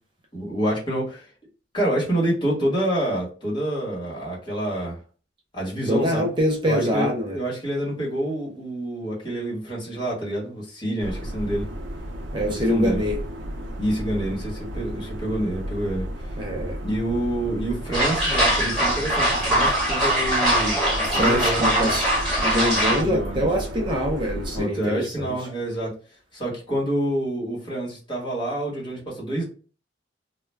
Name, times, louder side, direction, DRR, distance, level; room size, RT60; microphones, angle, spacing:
voice 1, 0.3-1.3 1.7-5.0 5.5-6.3 6.6-11.7 12.5-13.0 13.8-16.1 16.8-20.8 21.1-21.9 22.8-23.5 24.5-25.9 26.3-29.4, right 1 dB, 25° left, 1.1 m, -27 dB
voice 2, 5.9-7.4 12.3-13.2 16.4-16.8 21.1-22.1 22.4-25.3, equal, 25° right, 0.5 m, -24 dB
sound 1, 11.0-24.6, equal, 75° right, 0.5 m, -33 dB
sound 2, 17.9-23.0, right 1 dB, ahead, 1.3 m, -22 dB
2.3 x 2.1 x 3.3 m
head